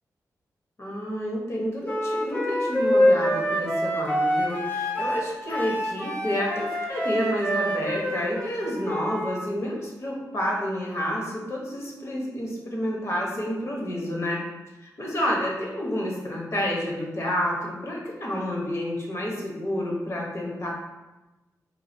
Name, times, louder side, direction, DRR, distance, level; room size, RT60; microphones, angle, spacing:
voice 1, 0.8-14.4 14.8-20.7, equal, 45° left, -3 dB, 1.1 m, -29 dB
Wind instrument woodwind instrument, 1.8-9.4, equal, 25° left, 0.7 m, -26 dB
4.7 x 2.4 x 2.7 m, 1.1 s
cardioid pair, 75°, 7 cm